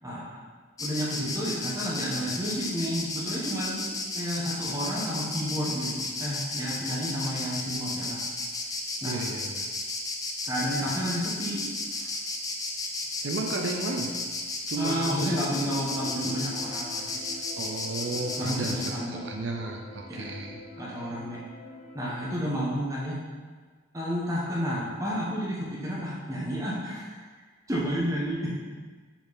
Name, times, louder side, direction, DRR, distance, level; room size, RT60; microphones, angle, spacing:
voice 1, 0.0-0.4 0.8-8.2 9.0-9.2 10.4-11.6 11.9-12.1 14.8-17.2 18.0-19.2 20.1-20.3 20.8-21.4 21.9-23.2 23.9-27.1 27.7-28.5, equal, 15° right, -6 dB, 1.1 m, -31 dB
Insect, 0.8-18.9, left 3 dB, 20° left, 0.5 m, -33 dB
voice 2, 9.0-9.6 13.2-14.1 14.7-15.7 17.6-20.6, right 2 dB, 65° right, 2 dB, 0.6 m, -33 dB
sound 1, 15.0-22.4, left 3 dB, 45° left, 0.8 m, -44 dB
5.8 x 4.4 x 4.0 m, 1.5 s
head